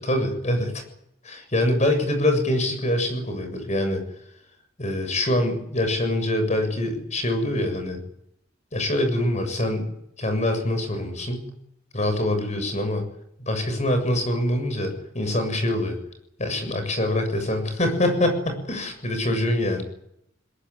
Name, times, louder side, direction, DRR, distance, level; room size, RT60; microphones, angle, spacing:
voice 1, 0.1-0.8 1.2-4.0 4.8-8.0 8.7-9.9 10.2-11.5 11.9-13.0 13.4-16.0 16.4-19.8, left 1 dB, 40° left, 7 dB, 7.3 m, -24 dB
22.0 x 21.5 x 9.9 m, 0.76 s
head